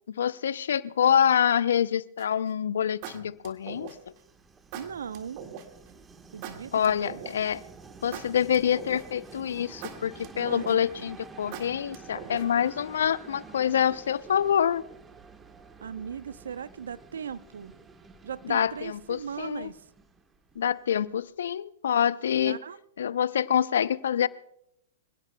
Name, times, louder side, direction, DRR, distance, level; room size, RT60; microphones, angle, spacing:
voice 1, 0.1-3.9 6.7-7.6 8.0-14.8 18.4-19.7 20.6-22.6 23.0-24.3, left 9 dB, 70° left, 0.6 m, -26 dB
sound 1, 2.2-2.5 3.0-4.2 4.7-5.7 6.4-7.6 8.1-9.3 9.8-11.0 11.5-12.7, right 8 dB, 45° right, 2.0 m, -41 dB
Train, 3.4-21.1, right 4 dB, 15° right, 1.4 m, -50 dB
voice 2, 4.7-5.4 6.3-7.2 10.3-11.2 15.8-17.7 18.2-19.8 22.3-22.8, right 7 dB, 75° right, 0.7 m, -38 dB
25.5 x 17.0 x 2.3 m
hypercardioid pair, 115°, 0 cm